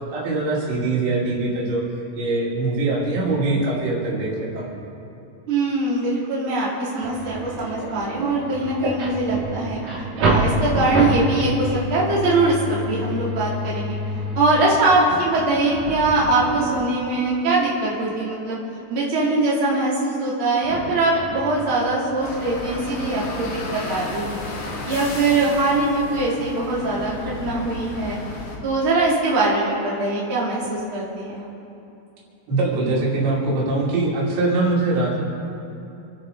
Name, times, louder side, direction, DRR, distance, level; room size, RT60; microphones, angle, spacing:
voice 1, 0.1-1.8 2.1-4.7 32.5-35.2, right 2 dB, 90° right, -4 dB, 4.9 m, -22 dB
voice 2, 5.5-9.8 10.2-13.9 14.3-18.6 18.9-24.4 24.8-28.2 28.6-31.5, right 2 dB, 30° right, -6 dB, 3.4 m, -22 dB
sound 1, 7.0-17.2 20.6-22.3, right 1 dB, 60° right, 3.6 m, -27 dB
sound 2, 22.2-28.6, left 2 dB, 90° left, 4.5 m, -33 dB
28.0 x 9.9 x 4.0 m, 2.8 s
omnidirectional pair, 5.0 m